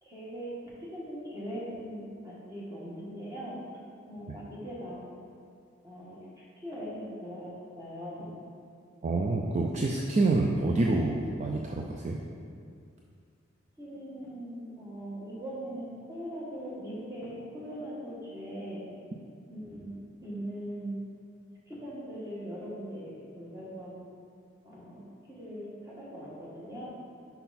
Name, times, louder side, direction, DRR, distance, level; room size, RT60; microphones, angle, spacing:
voice 1, 0.1-0.5 0.8-3.6 4.1-5.0 5.8-6.2 6.6-8.3 13.8-18.8 19.5-21.0 21.7-23.1 23.3-23.9 24.6-25.0 25.3-26.9, equal, 20° right, -7 dB, 1.6 m, -40 dB
voice 2, 9.0-12.2, right 2 dB, 40° right, 0 dB, 0.4 m, -27 dB
5.8 x 5.6 x 4.2 m, 2.3 s
head